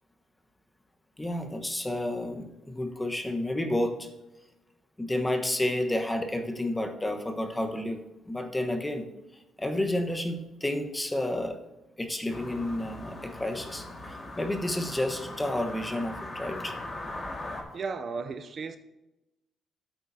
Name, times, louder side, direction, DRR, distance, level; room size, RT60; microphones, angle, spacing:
voice 1, 1.2-4.1 5.0-8.0 8.3-9.1 9.6-11.6 12.0-13.9 14.4-16.7, left 1 dB, 15° left, 1.2 m, -30 dB
sound 1, 12.3-17.6, left 2 dB, 30° left, 1.9 m, -40 dB
voice 2, 17.7-18.8, right 4 dB, 50° right, 0.5 m, -34 dB
13.0 x 8.5 x 2.8 m
cardioid pair, 90°, 0 cm